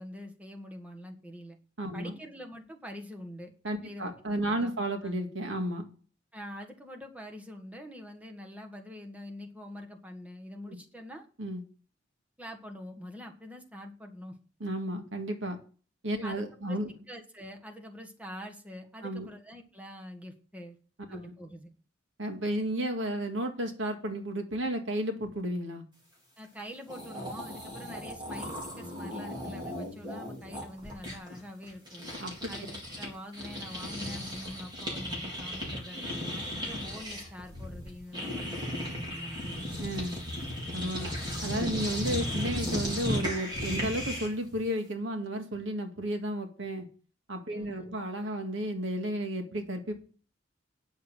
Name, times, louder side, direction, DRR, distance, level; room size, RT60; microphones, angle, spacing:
voice 1, 0.0-1.6 1.9-3.5 3.8-4.1 4.4-4.7 5.0-5.1 6.3-11.2 12.4-14.4 16.2-16.8 17.1-20.8 21.1-21.7 26.4-32.1 32.5-39.6 47.5-48.0, equal, 10° right, 2 dB, 1.6 m, -45 dB
voice 2, 1.8-2.1 3.6-5.9 10.7-10.8 11.4-11.6 14.6-15.6 16.0-16.9 19.0-19.3 21.1-21.3 22.2-25.8 32.2-32.3 39.8-40.2 40.7-41.1 41.4-46.9 47.3-50.0, right 1 dB, 85° right, 5 dB, 2.0 m, -33 dB
sound 1, 26.6-26.7 26.9-33.1 33.3-44.4, left 1 dB, 25° right, 4.0 m, -36 dB
9.5 x 6.8 x 7.6 m, 0.39 s
head